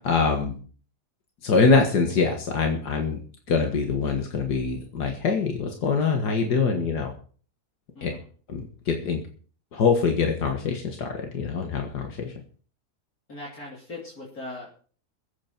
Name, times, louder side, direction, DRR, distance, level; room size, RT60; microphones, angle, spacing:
voice 1, 0.0-0.6 1.4-3.2 3.5-7.1 8.0-8.1 8.5-9.2 9.7-12.3, left 5 dB, 85° left, 3 dB, 2.2 m, -24 dB
voice 2, 8.0-8.3 13.3-14.7, left 2 dB, 65° left, -4 dB, 3.6 m, -39 dB
21.0 x 8.7 x 4.5 m, 0.43 s
omnidirectional pair, 1.7 m